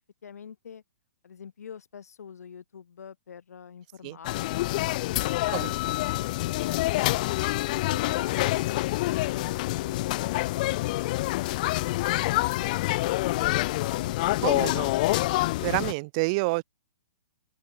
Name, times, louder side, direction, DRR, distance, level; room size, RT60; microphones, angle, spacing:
voice 1, 0.2-0.8 1.2-7.1 7.8-14.2, left 7 dB, 80° left, 6.9 m, -46 dB
sound 1, 4.2-15.9, left 19 dB, 30° left, 0.7 m, -27 dB
voice 2, 14.4-14.9 15.6-16.6, right 28 dB, 25° right, 0.5 m, -28 dB
open air
hypercardioid pair, 170°, 8 cm